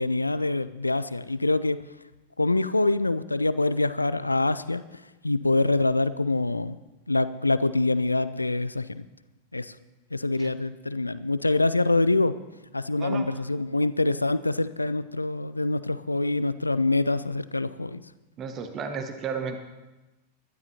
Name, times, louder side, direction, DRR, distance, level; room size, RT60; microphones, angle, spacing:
voice 1, 0.0-1.8 2.4-4.8 5.2-6.8 7.1-9.0 9.5-9.7 10.1-12.3 12.7-18.0, left 2 dB, 85° left, 15 dB, 0.5 m, -25 dB
voice 2, 18.4-19.6, right 5 dB, 30° right, 7 dB, 1.4 m, -33 dB
21.5 x 12.5 x 2.9 m, 1.1 s
figure-of-eight pair, 90°, 0 cm